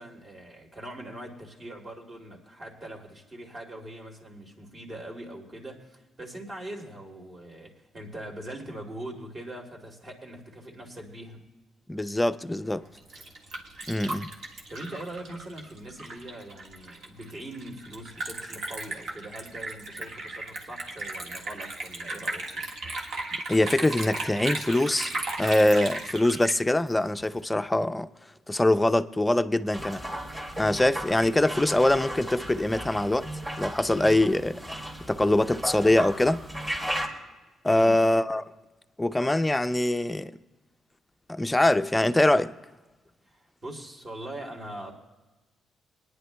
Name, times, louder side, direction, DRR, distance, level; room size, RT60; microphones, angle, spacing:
voice 1, 0.0-11.4 14.7-22.7 37.6-38.0 43.3-45.0, right 1 dB, 40° right, 2.7 m, -42 dB
voice 2, 11.9-12.8 13.9-14.3 23.5-25.1 25.4-28.1 28.5-30.0 30.6-33.3 33.6-34.6 35.1-36.4 37.6-38.4 39.0-40.3 41.3-42.5, left 1 dB, 10° left, 0.5 m, -23 dB
Liquid, 12.8-27.4, right 2 dB, 65° right, 1.6 m, -36 dB
sound 1, 29.7-37.1, equal, 20° right, 2.3 m, -35 dB
25.5 x 10.0 x 2.3 m
cardioid pair, 90°, 0 cm